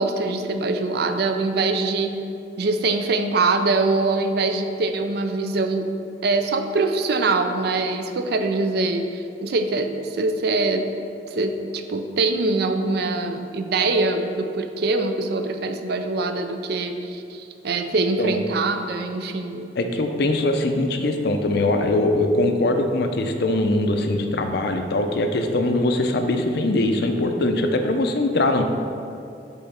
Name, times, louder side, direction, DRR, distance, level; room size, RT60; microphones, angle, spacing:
voice 1, 0.0-2.2 2.6-5.9 6.2-10.9 11.3-19.7, right 3 dB, 65° right, 6 dB, 0.5 m, -23 dB
voice 2, 19.8-28.6, left 2 dB, 65° left, 5 dB, 0.6 m, -22 dB
5.5 x 3.8 x 5.7 m, 2.5 s
head